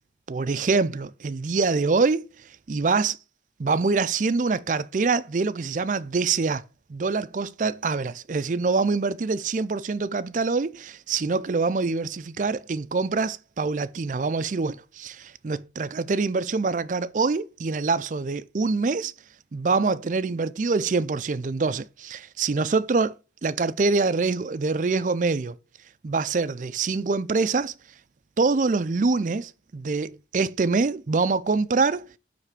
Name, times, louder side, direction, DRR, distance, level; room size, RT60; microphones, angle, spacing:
voice 1, 0.3-2.2 2.7-3.2 3.6-6.6 6.9-19.1 19.5-23.2 23.4-25.6 26.0-27.7 28.4-32.0, right 4 dB, 45° right, 0.4 m, -25 dB
9.4 x 3.3 x 6.6 m
head